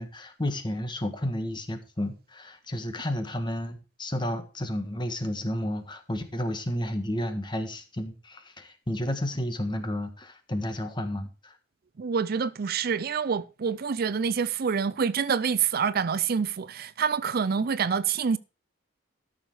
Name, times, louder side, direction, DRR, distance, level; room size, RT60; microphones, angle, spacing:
voice 1, 0.0-11.5, left 1 dB, 25° left, 1.5 m, -32 dB
voice 2, 12.0-18.4, right 6 dB, 55° right, 0.5 m, -27 dB
13.0 x 6.6 x 4.8 m
head